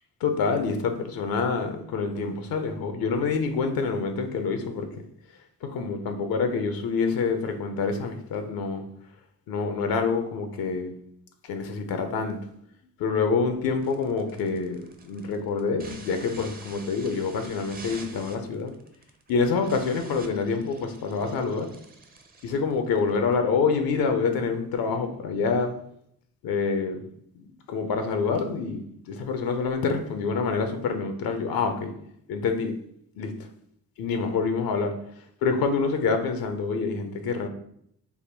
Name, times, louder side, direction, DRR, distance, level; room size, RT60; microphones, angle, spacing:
voice 1, 0.2-5.0 5.6-8.8 9.5-10.9 11.4-12.4 13.0-18.7 19.3-21.7 22.4-25.7 26.4-27.1 27.3-31.9 32.3-32.7 33.2-33.5 34.0-35.0 35.4-37.5, left 4 dB, 80° left, 7 dB, 0.6 m, -27 dB
sound 1, 13.8-23.4, right 3 dB, 25° right, 0.6 m, -47 dB
3.5 x 2.1 x 4.4 m, 0.70 s
cardioid pair, 80°, 35 cm